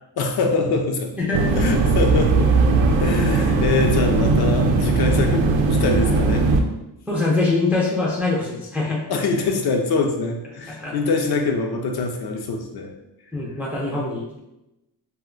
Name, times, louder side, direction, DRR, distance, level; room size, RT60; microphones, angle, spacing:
voice 1, 0.2-1.1 1.6-2.5 3.0-6.5 9.1-12.9, left 3 dB, 60° left, 3 dB, 0.5 m, -24 dB
sound 1, 1.3-6.6, right 3 dB, 80° right, 0.5 m, -18 dB
voice 2, 7.1-9.0 10.8-10.9 13.3-14.4, left 3 dB, 5° right, -4 dB, 0.3 m, -23 dB
2.4 x 2.2 x 3.7 m, 0.92 s
wide cardioid pair, 165°, 45 cm